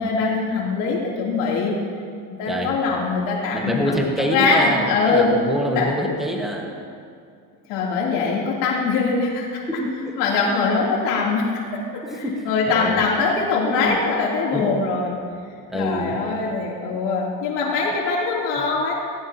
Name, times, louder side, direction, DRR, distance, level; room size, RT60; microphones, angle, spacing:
voice 1, 0.0-1.8 2.4-3.9 4.3-5.3 5.7-5.9 7.7-9.6 10.2-15.2 15.7-18.9, left 4 dB, 65° left, -4 dB, 3.3 m, -22 dB
voice 2, 2.5-2.8 3.5-6.8 9.7-9.9 10.9-11.0 12.0-13.0 13.6-14.0 14.5-14.7 15.7-16.2, equal, ahead, -1 dB, 1.5 m, -25 dB
18.0 x 18.0 x 3.0 m, 2.3 s
cardioid pair, 145°, 45 cm